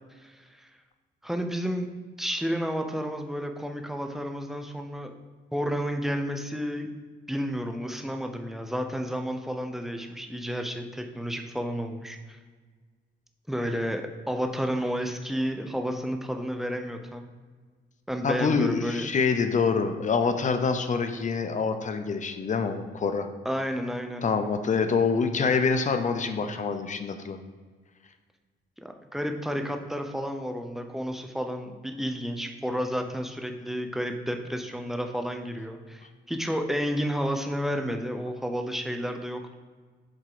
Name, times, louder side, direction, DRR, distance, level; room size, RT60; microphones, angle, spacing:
voice 1, 0.2-0.7 1.2-1.9 2.2-5.1 5.5-6.9 7.3-12.4 13.5-17.2 18.1-19.1 23.4-24.2 28.8-39.5, equal, ahead, 5 dB, 0.8 m, -31 dB
voice 2, 18.2-23.3 24.2-27.4, left 5 dB, 40° left, 8 dB, 0.7 m, -26 dB
7.6 x 3.7 x 5.0 m, 1.5 s
cardioid pair, 90°, 20 cm